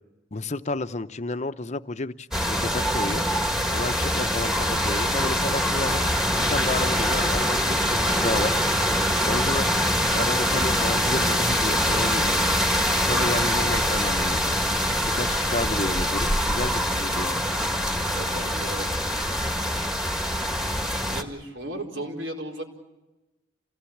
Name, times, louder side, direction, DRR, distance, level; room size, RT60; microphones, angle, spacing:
voice 1, 0.3-3.2 3.7-6.0 6.5-8.5 9.2-9.7 10.1-12.6 13.0-14.4 15.0-17.4, left 2 dB, 35° left, 12 dB, 0.8 m, -31 dB
sound 1, 2.3-21.2, equal, 5° right, 1.7 m, -24 dB
voice 2, 17.9-18.9 21.1-22.6, right 1 dB, 85° right, 1 dB, 4.4 m, -35 dB
27.5 x 17.5 x 8.6 m, 1.1 s
head